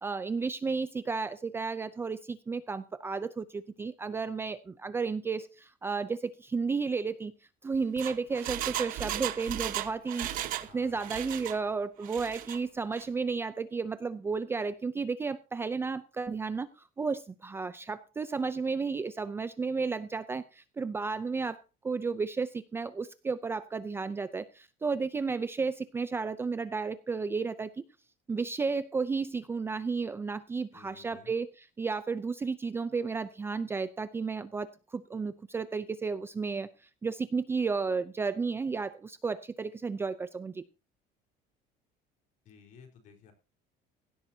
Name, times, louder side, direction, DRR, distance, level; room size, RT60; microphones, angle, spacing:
voice 1, 0.0-7.3 7.6-27.8 28.3-31.5 31.8-36.7 37.0-40.6, right 4 dB, 15° right, 12 dB, 0.5 m, -33 dB
Engine, 7.7-10.7 11.0-11.6 12.0-12.6 12.9-13.0, right 13 dB, 55° right, 1.2 m, -36 dB
voice 2, 10.7-11.6 30.7-31.3 42.4-43.3, left 6 dB, 45° left, 4 dB, 4.4 m, -56 dB
16.5 x 12.0 x 2.8 m, 0.31 s
cardioid pair, 180°, 17 cm